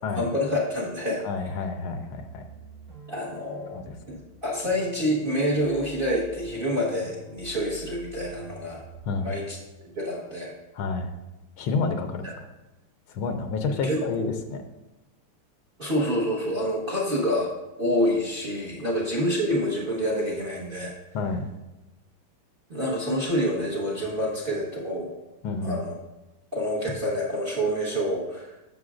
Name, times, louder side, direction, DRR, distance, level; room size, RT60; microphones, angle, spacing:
voice 1, 0.1-1.2 3.1-8.8 9.2-10.5 12.2-12.3 13.8-14.3 15.8-17.5 17.8-20.9 22.7-25.1 25.6-25.9 26.5-28.7, equal, 30° right, -3 dB, 1.0 m, -27 dB
voice 2, 1.2-2.4 3.7-3.9 9.1-9.3 10.7-11.1 11.6-12.3 13.1-14.6 21.1-21.4 25.4-25.8, left 4 dB, 75° left, 6 dB, 1.5 m, -29 dB
sound 1, 2.0-9.2, right 3 dB, 70° right, 3.8 m, -47 dB
11.0 x 6.7 x 2.5 m, 1.0 s
omnidirectional pair, 2.4 m